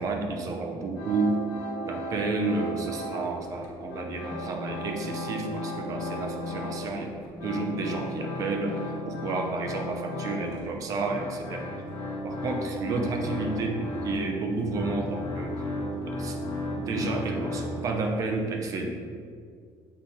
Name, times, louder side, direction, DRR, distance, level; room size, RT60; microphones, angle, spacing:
voice 1, 0.0-1.4 1.8-7.1 7.4-11.7 12.2-15.6 16.1-16.4 16.8-18.9, right 3 dB, 35° right, 3 dB, 0.7 m, -31 dB
sound 1, 0.9-3.4 3.6-7.0 7.2-18.1, left 1 dB, 90° left, 1.2 m, -35 dB
7.4 x 3.4 x 4.2 m, 2.2 s
cardioid pair, 180°, 10 cm